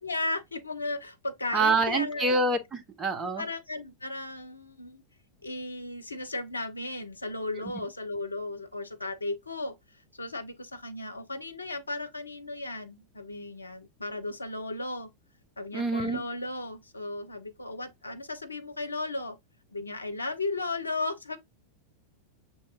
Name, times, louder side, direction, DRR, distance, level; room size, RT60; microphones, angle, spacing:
voice 1, 0.0-2.4 3.3-5.0 5.4-15.1 15.6-19.4 19.7-21.4, left 2 dB, 80° left, 0.6 m, -35 dB
voice 2, 1.5-3.4 15.7-16.2, right 3 dB, 20° right, 0.8 m, -26 dB
6.4 x 3.0 x 2.2 m
figure-of-eight pair, 90°, 0 cm